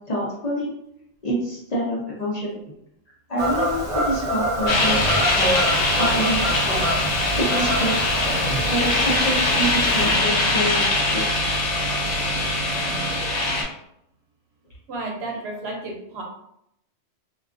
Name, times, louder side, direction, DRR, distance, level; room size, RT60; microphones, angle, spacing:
voice 1, 0.1-0.7 1.2-2.5 3.3-5.7 6.0-7.1 7.4-8.0 8.7-11.4, right 1 dB, 45° left, -6 dB, 0.7 m, -27 dB
Fowl / Bird vocalization bird call bird song, 3.4-10.1, equal, 50° right, 0.4 m, -27 dB
sound 1, 4.7-13.6, left 2 dB, 80° left, 1.0 m, -22 dB
voice 2, 14.9-16.2, right 2 dB, 75° right, 0 dB, 0.9 m, -32 dB
2.3 x 2.3 x 2.4 m, 0.77 s
omnidirectional pair, 1.1 m